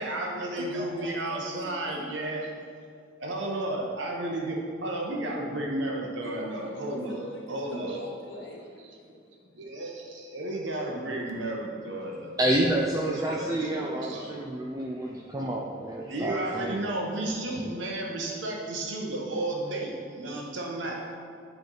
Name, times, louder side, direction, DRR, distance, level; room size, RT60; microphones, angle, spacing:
voice 1, 0.0-2.5 3.2-8.0 8.8-9.0 9.5-12.7 13.0-14.3 16.1-21.0, right 1 dB, 75° right, -1 dB, 1.0 m, -33 dB
voice 2, 0.6-2.1 6.1-9.1 9.4-9.5 20.8-21.1, left 1 dB, 70° left, -2 dB, 1.1 m, -42 dB
voice 3, 12.4-16.9, right 1 dB, 20° right, -3 dB, 0.4 m, -29 dB
8.9 x 3.4 x 3.9 m, 2.2 s
head